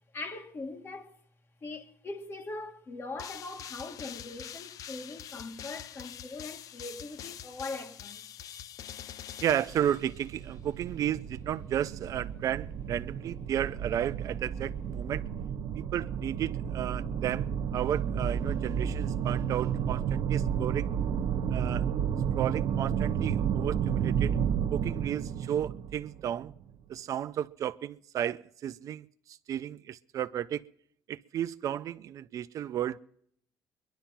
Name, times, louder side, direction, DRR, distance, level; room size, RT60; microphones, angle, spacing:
voice 1, 0.1-1.2 1.6-8.3, left 3 dB, 35° left, 1.9 m, -41 dB
sound 1, 3.2-10.5, left 10 dB, 60° left, 0.6 m, -45 dB
voice 2, 9.4-15.2 15.7-20.9 21.5-21.9 22.4-24.4 24.7-26.5 26.9-29.1 29.5-30.6 31.1-33.0, right 10 dB, 55° right, 0.5 m, -33 dB
sound 2, 9.7-26.7, right 8 dB, 75° right, 1.2 m, -32 dB
21.5 x 11.5 x 5.8 m
cardioid pair, 90°, 7 cm